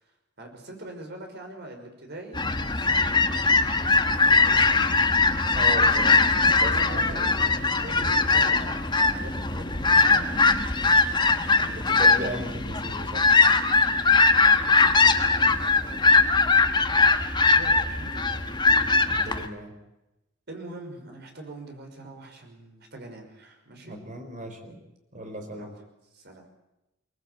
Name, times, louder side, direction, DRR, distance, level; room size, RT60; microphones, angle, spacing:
voice 1, 0.4-3.7 4.0-4.9 6.3-10.5 14.0-16.5 17.6-18.5 20.5-24.0 25.6-25.8 26.1-26.5, right 2 dB, 55° right, 3 dB, 5.7 m, -43 dB
sound 1, 2.3-19.5, left 3 dB, 25° left, 1.4 m, -21 dB
voice 2, 5.5-7.5 11.6-13.4 19.1-19.7 23.8-24.8 25.1-25.7, right 1 dB, 40° right, 5 dB, 4.3 m, -37 dB
24.0 x 19.5 x 8.4 m, 0.94 s
head